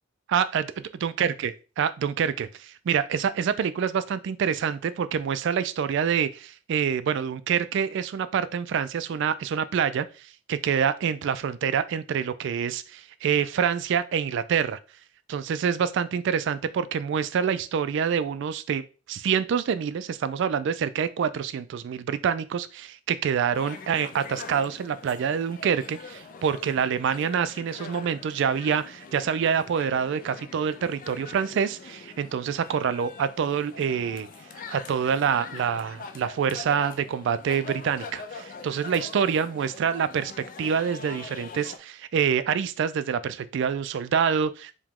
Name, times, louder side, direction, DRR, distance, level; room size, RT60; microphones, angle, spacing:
voice 1, 0.3-0.6 1.0-14.8 15.3-18.8 19.1-34.3 34.7-40.3 40.6-44.7, right 7 dB, 65° right, 13 dB, 0.3 m, -26 dB
sound 1, 23.5-41.8, left 4 dB, 45° left, 0.4 m, -43 dB
4.8 x 2.2 x 3.6 m, 0.33 s
head